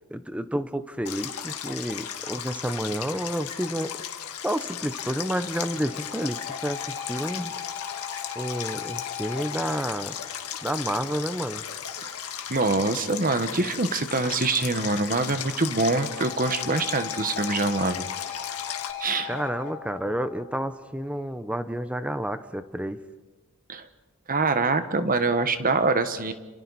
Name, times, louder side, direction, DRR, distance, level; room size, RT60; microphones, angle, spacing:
voice 1, 0.1-4.0 4.4-7.5 8.4-10.1 10.6-11.6 19.3-23.0, equal, 5° right, 11 dB, 0.8 m, -30 dB
Stream, 1.1-18.9, left 9 dB, 85° left, 1.7 m, -36 dB
sound 1, 4.8-11.2 14.7-21.2, left 8 dB, 50° left, 4.4 m, -39 dB
voice 2, 12.5-18.1 19.0-19.4 23.7-23.9 24.3-26.3, right 3 dB, 40° right, 9 dB, 1.3 m, -25 dB
29.0 x 28.0 x 4.2 m, 1.3 s
head